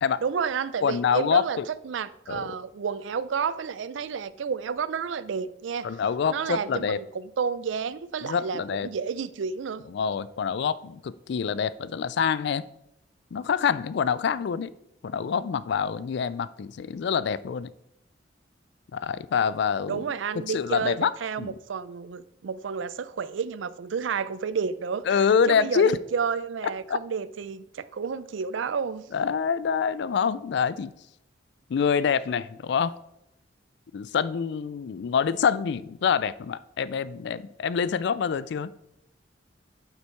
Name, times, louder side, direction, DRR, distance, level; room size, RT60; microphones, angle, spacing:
voice 1, 0.2-1.6 1.8-5.9 6.3-9.8 19.9-29.1, right 6 dB, 80° right, 0.4 m, -31 dB
voice 2, 0.8-1.7 2.3-2.4 5.8-7.0 8.2-8.9 9.9-12.6 13.3-14.7 15.0-17.7 18.9-20.0 20.4-21.1 21.4-21.6 25.1-26.0 26.9-27.0 29.1-30.9 31.7-32.9 33.9-38.7, left 6 dB, 65° left, 0.4 m, -26 dB
7.8 x 5.8 x 4.5 m
head